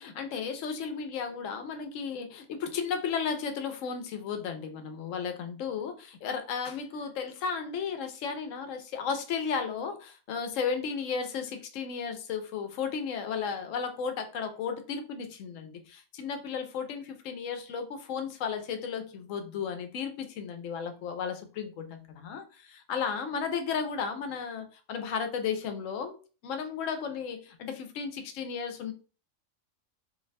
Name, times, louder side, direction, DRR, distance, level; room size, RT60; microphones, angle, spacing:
voice 1, 0.0-26.2 26.4-28.9, left 6 dB, 80° left, 7 dB, 1.0 m, -34 dB
2.6 x 2.1 x 3.9 m, 0.35 s
omnidirectional pair, 1.3 m